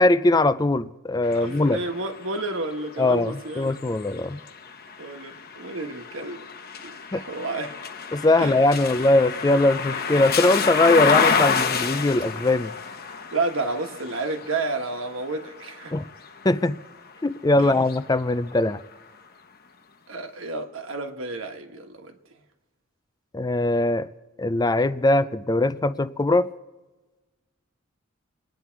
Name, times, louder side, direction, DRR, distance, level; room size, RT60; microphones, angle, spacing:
voice 1, 0.0-1.8 3.0-4.4 7.1-7.2 8.1-12.7 15.9-16.1 16.4-16.8 17.2-18.8 23.3-24.1 24.4-26.5, left 2 dB, 20° left, 0.5 m, -21 dB
sound 1, 1.2-17.2 17.7-19.0, left 6 dB, 50° left, 1.0 m, -29 dB
voice 2, 1.3-3.7 5.0-6.4 6.8-7.7 8.4-8.6 13.3-15.9 17.6-17.8 20.1-22.1, right 3 dB, 75° right, 1.4 m, -31 dB
27.0 x 9.9 x 4.6 m
head